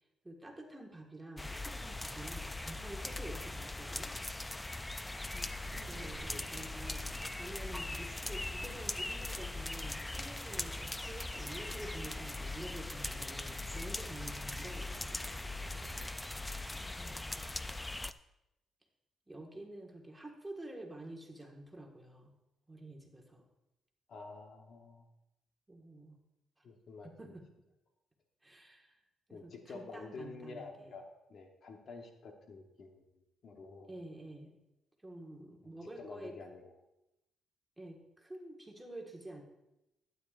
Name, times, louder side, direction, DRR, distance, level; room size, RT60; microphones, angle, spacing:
voice 1, 0.2-4.1 5.3-5.5 5.8-14.9 16.7-17.7 19.3-22.3 22.7-23.4 25.7-26.2 27.0-27.4 28.4-28.9 29.3-30.9 33.9-34.6 35.0-36.3 37.8-39.4, right 1 dB, 10° right, 2 dB, 1.5 m, -49 dB
sound 1, 1.4-18.1, left 2 dB, 10° left, 0.3 m, -40 dB
sound 2, 5.6-16.1, right 5 dB, 70° right, 0.8 m, -56 dB
voice 2, 5.7-6.5 24.1-25.0 26.6-27.3 29.3-33.0 33.4-33.9 35.6-35.7 36.0-36.7, left 4 dB, 55° left, 4 dB, 1.1 m, -49 dB
12.0 x 9.2 x 2.5 m, 0.91 s
cardioid pair, 90°, 0 cm